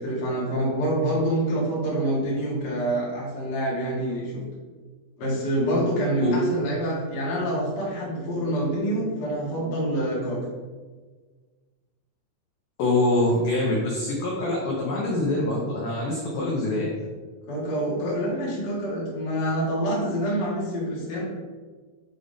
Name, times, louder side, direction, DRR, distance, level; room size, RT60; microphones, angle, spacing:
voice 1, 0.0-4.4 5.2-10.4 17.5-21.2, right 1 dB, 65° left, -6 dB, 1.0 m, -26 dB
voice 2, 12.8-16.9, left 2 dB, 90° left, -3 dB, 1.8 m, -24 dB
7.3 x 2.7 x 5.0 m, 1.4 s
omnidirectional pair, 4.9 m